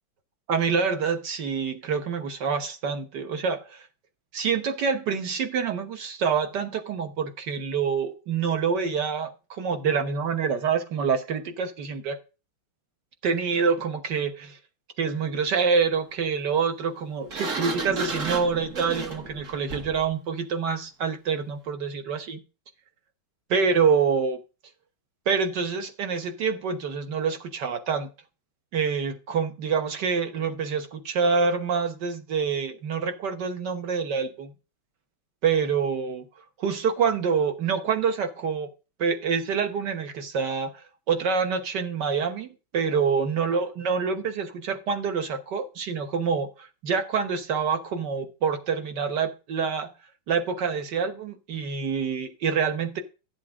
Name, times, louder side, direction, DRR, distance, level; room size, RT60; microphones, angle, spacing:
voice 1, 0.5-3.9 4.3-12.2 13.2-14.6 15.0-22.4 23.5-24.4 25.3-28.1 28.7-34.5 35.4-36.3 36.6-38.7 39.0-40.7 41.1-46.5 46.8-49.9 50.3-53.0, right 6 dB, 60° right, 7 dB, 1.7 m, -26 dB
Sliding door, 17.3-20.1, right 3 dB, 40° right, 1.6 m, -32 dB
12.5 x 7.6 x 3.6 m, 0.31 s
omnidirectional pair, 2.3 m